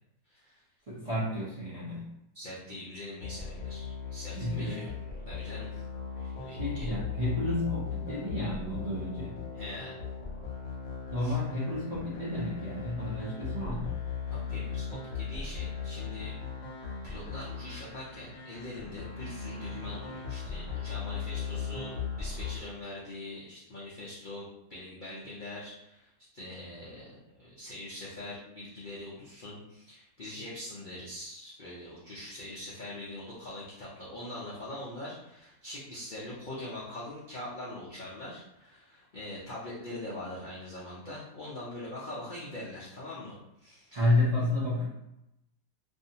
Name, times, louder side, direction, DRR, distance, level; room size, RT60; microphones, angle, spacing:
voice 1, 0.3-0.6 2.3-4.9 5.3-5.8 6.1-6.9 9.5-10.0 11.2-11.3 14.3-16.4 17.0-44.0 44.3-44.5, left 1 dB, 80° left, -8 dB, 0.4 m, -43 dB
voice 2, 0.9-2.1 4.3-4.9 6.5-9.4 11.1-13.9 43.9-44.8, left 1 dB, 85° right, -9 dB, 0.3 m, -31 dB
sound 1, 3.2-22.6, left 6 dB, 60° left, 0.9 m, -38 dB
2.6 x 2.4 x 2.7 m, 0.87 s
omnidirectional pair, 1.7 m